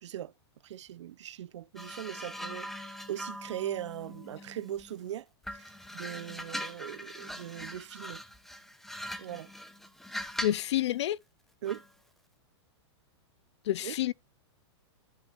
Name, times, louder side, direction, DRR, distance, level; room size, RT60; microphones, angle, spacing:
voice 1, 0.0-0.3 0.6-8.2 9.2-9.5 11.6-11.8 13.8-13.9, right 11 dB, 80° right, 0.7 m, -40 dB
sound 1, 1.8-5.0 5.4-10.7 11.7-11.9, equal, ahead, 0.8 m, -41 dB
voice 2, 10.4-11.2 13.6-14.1, left 13 dB, 70° left, 0.5 m, -28 dB
13.5 x 5.7 x 2.5 m
hypercardioid pair, 150°, 15 cm